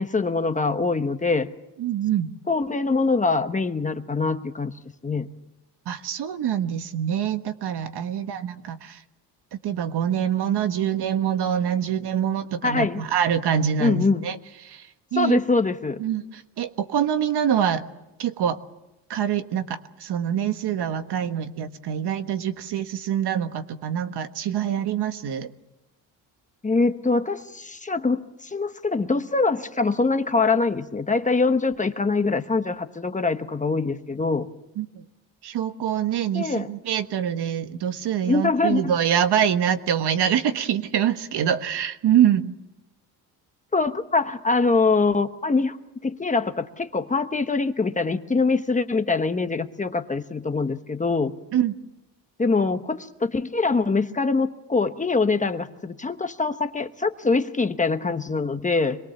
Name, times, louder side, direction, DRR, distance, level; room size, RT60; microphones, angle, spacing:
voice 1, 0.0-1.5 2.5-4.7 5.0-5.3 12.6-13.0 13.8-14.3 15.2-16.0 26.6-34.5 36.3-36.7 38.3-38.8 43.7-45.8 46.0-51.3 52.4-59.0, left 3 dB, 20° left, 8 dB, 1.0 m, -23 dB
voice 2, 1.8-2.3 5.8-9.0 9.6-14.4 14.6-15.4 16.0-17.9 18.2-18.6 19.1-25.5 34.8-35.0 35.4-42.5 51.5-51.7, right 9 dB, 70° right, 9 dB, 1.5 m, -25 dB
26.5 x 22.0 x 7.2 m, 0.96 s
cardioid pair, 150°, 42 cm